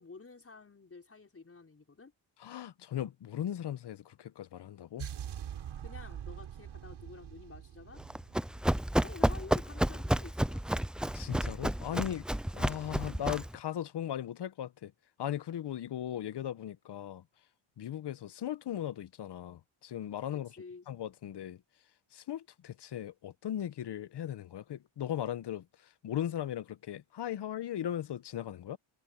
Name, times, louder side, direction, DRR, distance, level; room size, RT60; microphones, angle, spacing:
voice 1, 0.0-2.1 5.8-8.0 9.0-10.7 20.6-20.9, left 4 dB, 30° left, 5.7 m, -50 dB
voice 2, 2.4-5.1 11.1-12.2 12.5-14.9 15.2-17.2 17.8-20.5 20.9-21.6 22.1-28.8, left 11 dB, 55° left, 1.0 m, -38 dB
sound 1, 5.0-9.1, right 10 dB, 75° right, 4.9 m, -44 dB
Run, 8.0-13.6, right 1 dB, ahead, 0.4 m, -31 dB
cardioid pair, 85°, 48 cm